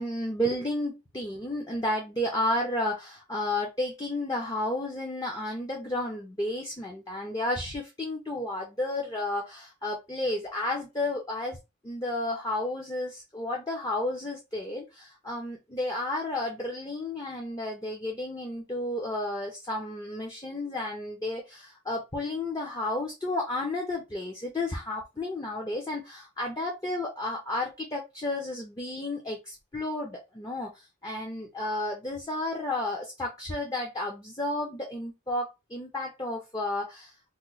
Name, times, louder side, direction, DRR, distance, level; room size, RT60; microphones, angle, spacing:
voice 1, 0.0-11.6 11.8-37.1, left 1 dB, 20° left, 0.5 m, -32 dB
3.0 x 2.0 x 3.9 m
head